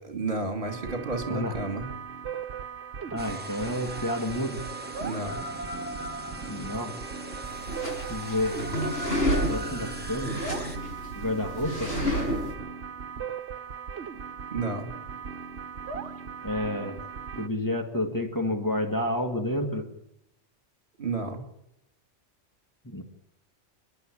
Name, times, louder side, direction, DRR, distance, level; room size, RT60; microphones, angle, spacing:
voice 1, 0.0-1.9 5.0-5.4 14.5-14.9 21.0-21.4, right 3 dB, 45° right, 7 dB, 3.1 m, -31 dB
sound 1, 0.6-17.5, right 6 dB, 65° right, 1.3 m, -38 dB
voice 2, 1.3-1.6 3.1-4.6 6.5-6.9 8.0-8.6 9.5-10.3 11.1-11.9 16.4-17.0 17.4-19.8 22.8-23.0, left 1 dB, 15° left, 3 dB, 2.0 m, -30 dB
sound 2, 3.2-10.8, right 1 dB, 10° right, 1.7 m, -40 dB
sound 3, 7.4-12.5, equal, 55° left, 6.5 m, -30 dB
29.0 x 11.0 x 8.7 m, 0.81 s
omnidirectional pair, 1.2 m